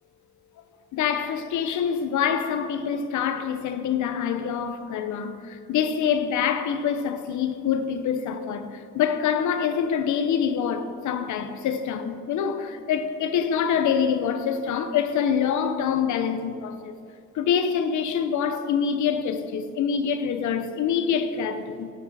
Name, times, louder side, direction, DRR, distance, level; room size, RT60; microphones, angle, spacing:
voice 1, 0.9-17.0 17.3-21.9, left 7 dB, 75° left, 0.8 m, -25 dB
10.5 x 7.7 x 4.1 m
cardioid pair, 90°, 30 cm